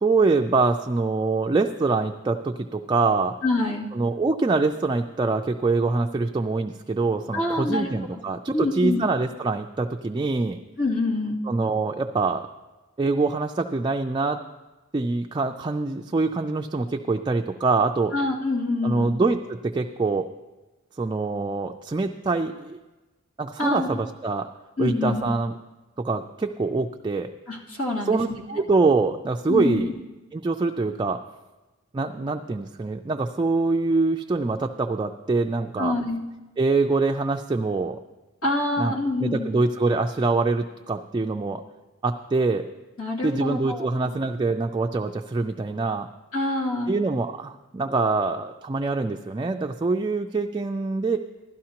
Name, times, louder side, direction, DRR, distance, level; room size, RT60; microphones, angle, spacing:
voice 1, 0.0-3.4 3.9-10.6 11.5-12.5 13.0-14.4 14.9-18.1 18.8-20.3 21.0-22.8 23.4-24.5 24.8-25.5 26.0-27.3 28.1-28.3 28.6-29.9 30.3-31.2 31.9-36.0 36.6-38.0 38.8-38.9 39.2-41.6 42.0-42.7 43.2-46.1 46.9-51.2, right 3 dB, 20° right, 4 dB, 0.3 m, -24 dB
voice 2, 3.4-3.9 7.3-8.2 8.5-9.0 10.8-11.5 18.1-19.1 23.6-23.9 24.8-25.3 27.5-28.6 29.5-29.8 35.8-36.2 38.4-39.5 43.0-43.9 46.3-46.9, left 2 dB, 80° left, -5 dB, 2.6 m, -26 dB
16.0 x 12.5 x 2.9 m, 1.2 s
head